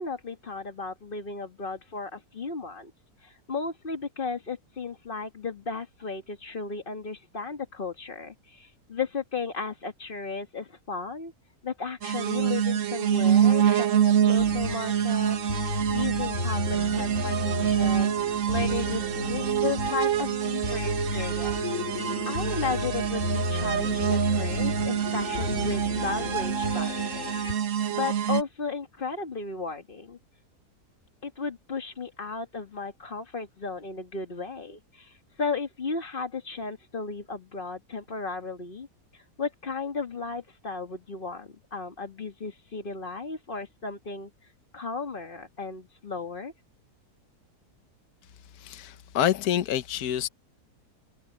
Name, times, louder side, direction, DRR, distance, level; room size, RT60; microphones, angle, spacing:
voice 1, 0.0-2.9 3.2-11.3 11.6-15.4 15.6-21.6 22.3-27.3 27.9-30.2 31.2-38.9 39.1-44.3 44.7-46.5, left 4 dB, 35° left, 2.0 m, -34 dB
sound 1, 12.0-28.4, right 9 dB, 55° right, 1.1 m, -26 dB
sound 2, 14.4-27.5, left 1 dB, 50° left, 5.7 m, -33 dB
voice 2, 48.6-50.3, left 10 dB, 75° left, 1.4 m, -27 dB
omnidirectional pair, 1.7 m